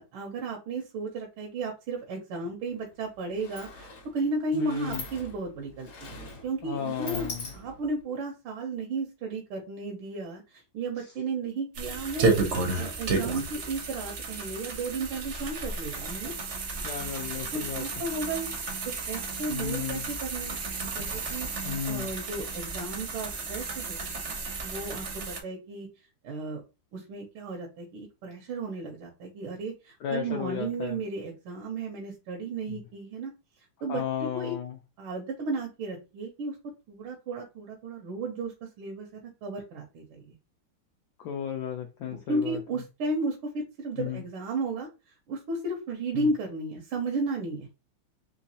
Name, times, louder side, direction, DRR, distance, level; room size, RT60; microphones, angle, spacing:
voice 1, 0.1-7.3 7.5-16.3 17.5-18.5 18.8-20.6 21.0-24.1 24.6-25.9 26.2-26.6 26.9-33.3 33.6-34.5 35.0-40.3 42.0-47.7, right 3 dB, 90° right, 1.6 m, -34 dB
Sliding door, 2.7-2.8 3.1-8.0, left 3 dB, 50° left, 0.9 m, -42 dB
voice 2, 4.5-5.0 6.6-7.5 16.8-17.8 19.5-20.1 21.6-22.1 30.0-31.0 33.9-34.8 41.2-42.6 44.0-44.2 46.1-46.3, left 8 dB, 85° left, 0.9 m, -34 dB
sound 1, 11.7-25.4, right 4 dB, 75° right, 0.6 m, -32 dB
3.9 x 2.9 x 2.7 m
omnidirectional pair, 2.3 m